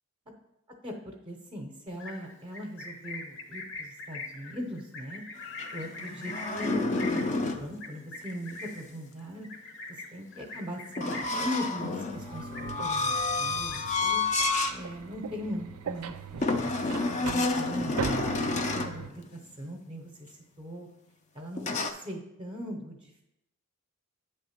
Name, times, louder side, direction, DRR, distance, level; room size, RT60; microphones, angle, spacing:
voice 1, 0.8-5.2 5.7-9.5 10.1-14.2 14.7-16.7 17.2-20.1 20.6-20.9 21.3-23.2, equal, 25° right, 1 dB, 0.7 m, -40 dB
Livestock farm animals working animals, 1.9-11.5 11.8-12.1 12.4-13.1 13.4-14.1, left 3 dB, 55° left, 0.9 m, -43 dB
sound 1, 5.4-7.7 11.0-14.8 15.2-15.4 16.4-19.0 21.6-21.9, left 3 dB, 35° left, 0.5 m, -29 dB
sound 2, 12.1-19.1, right 7 dB, 85° right, 0.4 m, -40 dB
8.4 x 3.4 x 5.7 m, 0.86 s
head